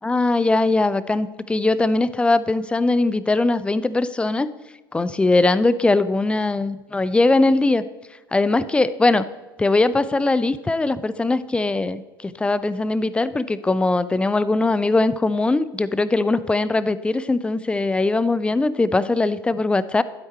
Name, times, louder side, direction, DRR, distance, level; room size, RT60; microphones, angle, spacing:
voice 1, 0.0-4.5 4.9-7.8 8.3-9.3 9.6-20.0, left 2 dB, 10° left, 16 dB, 0.4 m, -20 dB
12.5 x 8.0 x 4.6 m, 1.2 s
figure-of-eight pair, 75°, 12 cm